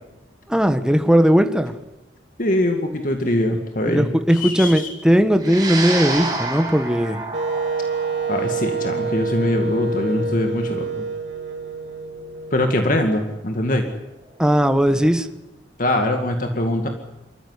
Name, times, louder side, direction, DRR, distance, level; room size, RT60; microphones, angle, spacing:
voice 1, 0.5-1.7 3.9-7.2 14.4-15.3, equal, 5° right, 7 dB, 1.4 m, -18 dB
voice 2, 2.4-4.8 8.3-11.0 12.5-13.8 15.8-16.9, left 1 dB, 45° left, 4 dB, 2.2 m, -22 dB
sound 1, 5.4-13.9, right 3 dB, 20° right, 6.9 m, -31 dB
Wind instrument woodwind instrument, 7.3-13.2, right 3 dB, 80° right, 2.1 m, -27 dB
26.0 x 14.5 x 9.8 m, 0.99 s
head